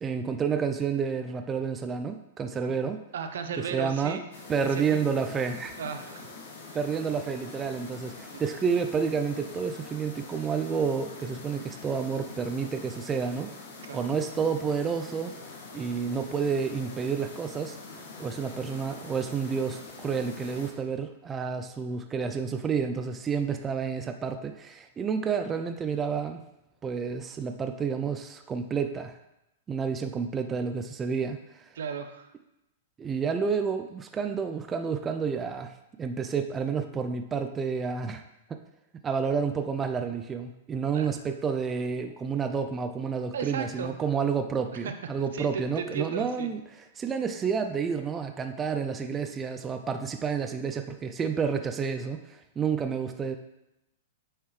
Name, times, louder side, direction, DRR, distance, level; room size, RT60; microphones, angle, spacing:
voice 1, 0.0-3.0 3.7-4.2 4.5-5.8 6.7-13.5 13.9-15.4 15.7-17.8 18.2-26.5 26.8-29.2 29.7-31.7 33.0-38.2 38.5-38.6 39.0-46.6 47.0-53.4, right 6 dB, 15° right, 6 dB, 0.4 m, -30 dB
voice 2, 3.1-4.2 4.6-5.0 5.8-6.3 8.3-8.4 13.8-14.1 31.7-32.3 40.9-41.1 43.3-43.9 44.7-44.9 45.3-46.5, right 7 dB, 75° right, 7 dB, 0.8 m, -35 dB
sound 1, 4.3-20.7, left 4 dB, 70° left, 1.7 m, -44 dB
9.0 x 4.7 x 3.2 m, 0.90 s
hypercardioid pair, 145°, 0 cm